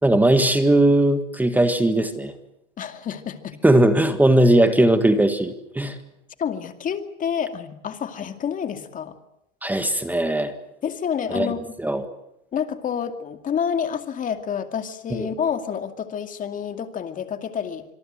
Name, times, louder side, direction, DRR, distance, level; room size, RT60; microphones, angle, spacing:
voice 1, 0.0-2.3 3.6-6.0 9.6-10.5 11.3-11.5 11.8-12.0 15.1-15.3, right 1 dB, 5° right, 9 dB, 1.7 m, -19 dB
voice 2, 2.8-3.6 6.4-9.1 10.8-11.7 12.5-17.8, left 7 dB, 20° left, 8 dB, 2.4 m, -28 dB
26.5 x 23.0 x 7.7 m, 0.80 s
supercardioid pair, 145°, 35 cm